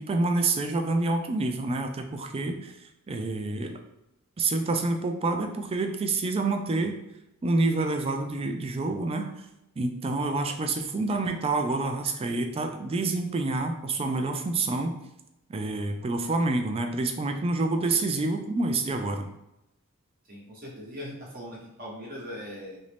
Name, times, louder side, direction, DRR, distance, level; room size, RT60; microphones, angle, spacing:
voice 1, 0.0-3.8 4.4-7.0 7.4-9.5 9.8-14.9 15.5-19.3, right 3 dB, 25° right, 5 dB, 0.3 m, -28 dB
voice 2, 20.3-22.8, equal, 45° right, -4 dB, 0.9 m, -40 dB
3.0 x 2.6 x 3.3 m, 0.90 s
head